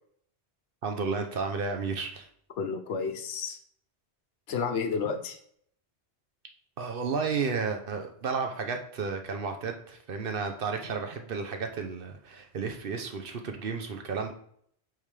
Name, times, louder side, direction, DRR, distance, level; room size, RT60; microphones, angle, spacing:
voice 1, 0.8-2.3 6.8-14.3, right 5 dB, 60° right, 5 dB, 0.9 m, -32 dB
voice 2, 2.6-3.6 4.5-5.4, left 5 dB, 90° left, 7 dB, 1.0 m, -31 dB
8.6 x 3.6 x 3.3 m, 0.66 s
omnidirectional pair, 1.1 m